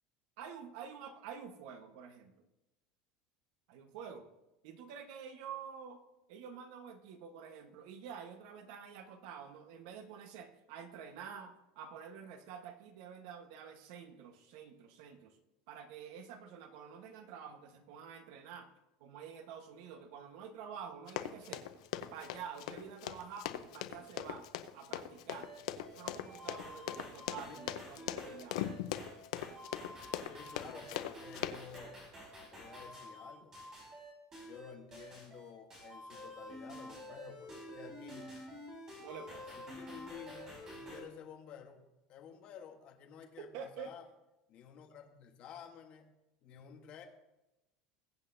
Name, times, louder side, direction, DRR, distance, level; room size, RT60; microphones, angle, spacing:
voice 1, 0.4-2.5 3.7-4.3 4.6-6.0 6.3-15.4 15.7-18.7 19.0-21.7 22.1-24.4 24.7-25.5 26.0-28.7 39.0-39.6 43.4-43.9, right 7 dB, 55° right, 6 dB, 1.3 m, -48 dB
Run, 21.1-31.8, left 12 dB, 85° left, 0.7 m, -40 dB
sound 1, 25.4-41.0, equal, 20° right, 4.7 m, -49 dB
voice 2, 30.2-32.0 32.5-33.5 34.4-38.4 39.5-41.8 42.1-44.1 44.5-46.1 46.4-47.0, left 8 dB, 35° left, 3 dB, 1.3 m, -52 dB
21.0 x 8.3 x 2.7 m, 0.95 s
cardioid pair, 175°, 3 cm